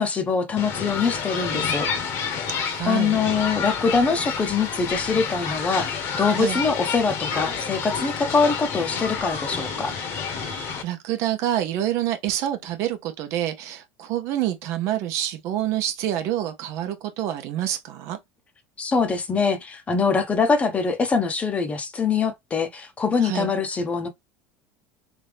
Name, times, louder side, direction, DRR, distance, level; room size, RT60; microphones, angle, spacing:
voice 1, 0.0-1.9 2.9-9.9 18.8-24.1, left 5 dB, 25° left, 0.8 m, -23 dB
sound 1, 0.6-10.8, left 6 dB, 55° left, 1.2 m, -29 dB
voice 2, 2.5-3.2 6.4-6.6 10.4-18.2 23.2-23.5, right 12 dB, 60° right, 0.8 m, -27 dB
3.5 x 2.8 x 3.3 m
supercardioid pair, 110°, 5 cm